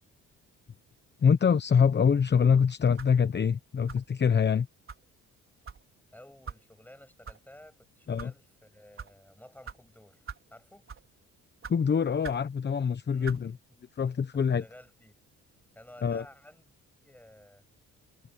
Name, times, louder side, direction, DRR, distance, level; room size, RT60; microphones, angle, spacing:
voice 1, 1.2-4.7 8.1-8.3 11.7-13.5 14.0-14.6 16.0-16.2, left 6 dB, 35° left, 1.0 m, -24 dB
sound 1, 3.0-3.2 3.9-4.2 4.9-5.0 5.7-5.8 6.5-6.6 7.2-7.4 8.0-8.3 9.0-9.1 9.7-9.8 10.3-10.5 10.9-11.1 11.6-11.8 12.2-12.5 13.2-13.4, right 6 dB, 45° right, 4.9 m, -42 dB
voice 2, 6.1-10.2 10.5-10.9 13.1-13.4 13.7-13.8 14.3-15.1 15.7-16.8 17.0-17.6, left 1 dB, 5° left, 7.6 m, -53 dB
cardioid pair, 90°, 30 cm